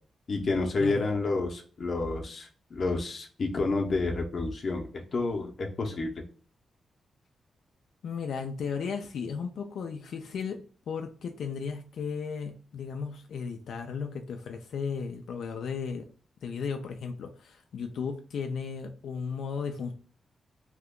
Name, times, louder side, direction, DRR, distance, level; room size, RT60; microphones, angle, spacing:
voice 1, 0.3-6.2, left 3 dB, 45° left, 2 dB, 0.6 m, -30 dB
voice 2, 8.0-16.1 16.4-19.9, left 6 dB, 85° left, 5 dB, 0.3 m, -35 dB
2.9 x 2.2 x 3.5 m, 0.41 s
wide cardioid pair, 145°, 0 cm